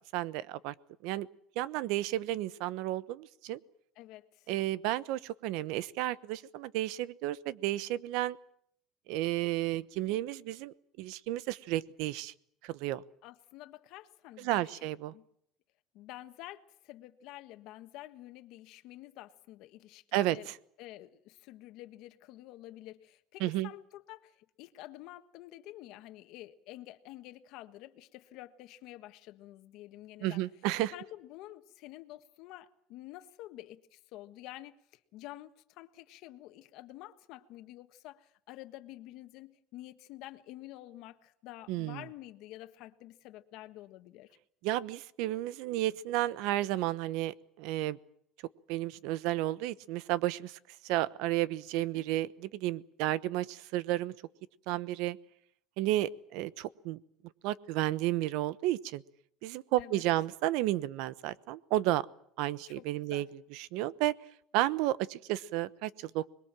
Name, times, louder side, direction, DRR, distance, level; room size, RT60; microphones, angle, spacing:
voice 1, 0.1-0.7 1.0-1.3 1.6-3.6 4.5-8.4 9.1-12.3 12.6-13.0 14.4-15.1 20.1-20.4 23.4-23.7 30.2-30.9 41.7-42.0 44.6-48.0 48.7-54.1 54.7-55.2 55.8-57.0 57.4-59.0 59.4-62.0 62.4-64.1 64.5-66.3, right 15 dB, 75° right, 1.0 m, -32 dB
voice 2, 3.9-4.5 13.2-14.8 15.1-15.3 15.9-20.5 20.8-30.4 30.9-34.8 35.1-44.4 51.8-52.1 59.8-60.0 62.6-63.3, left 15 dB, 65° left, 1.5 m, -49 dB
26.0 x 21.5 x 7.6 m
cardioid pair, 150°, 0 cm